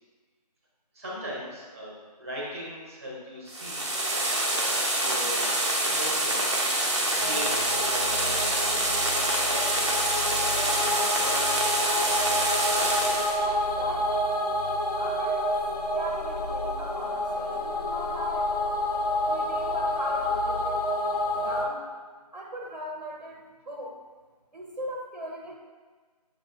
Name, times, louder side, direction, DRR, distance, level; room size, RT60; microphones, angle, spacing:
voice 1, 0.9-5.5 5.8-6.7 6.9-8.4, equal, 20° right, -6 dB, 1.0 m, -39 dB
sound 1, 3.5-13.4, right 1 dB, 45° right, 0.7 m, -26 dB
sound 2, 7.2-21.7, left 1 dB, 65° left, 0.7 m, -29 dB
voice 2, 9.5-9.9 10.4-12.3 12.8-14.2 14.9-15.6 15.9-18.5 19.2-20.8 21.4-21.9 22.3-24.0 24.5-25.6, right 1 dB, 85° right, -1 dB, 0.9 m, -39 dB
7.4 x 2.7 x 2.5 m, 1.4 s
figure-of-eight pair, 165°, 21 cm